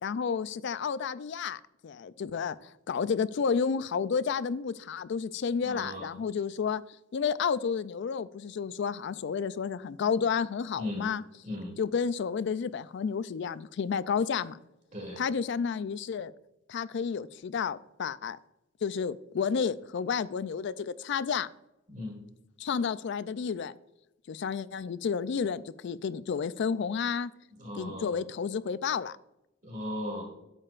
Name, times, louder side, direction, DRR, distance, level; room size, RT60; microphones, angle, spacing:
voice 1, 0.0-6.8 7.1-11.2 11.8-14.6 15.2-16.3 16.7-18.4 18.8-21.5 22.6-23.7 24.3-27.3 27.7-29.2, left 6 dB, 60° left, 16 dB, 0.3 m, -31 dB
voice 2, 5.6-6.1 10.8-11.1 11.4-11.7 14.9-15.2 21.9-22.2 27.6-28.2 29.6-30.2, left 1 dB, 40° right, 1 dB, 1.7 m, -37 dB
11.0 x 7.6 x 2.5 m, 0.91 s
head